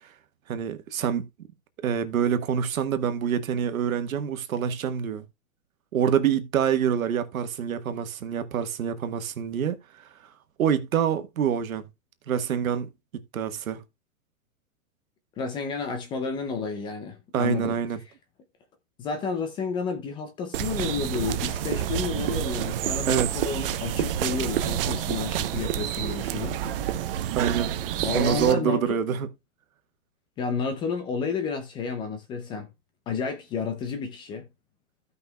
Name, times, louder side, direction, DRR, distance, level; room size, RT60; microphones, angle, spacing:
voice 1, 0.5-1.3 1.8-5.2 5.9-9.8 10.6-11.8 12.3-12.9 13.3-13.8 17.3-18.0 23.1-23.4 27.3-27.7 28.0-29.3, right 8 dB, 80° right, 1.5 m, -26 dB
voice 2, 15.4-17.8 19.0-26.6 28.0-29.0 30.4-32.7 33.1-34.5, left 5 dB, 10° left, 0.6 m, -31 dB
sound 1, 20.5-28.5, right 11 dB, 40° right, 0.8 m, -28 dB
15.5 x 5.5 x 2.2 m
hypercardioid pair, 155°, 41 cm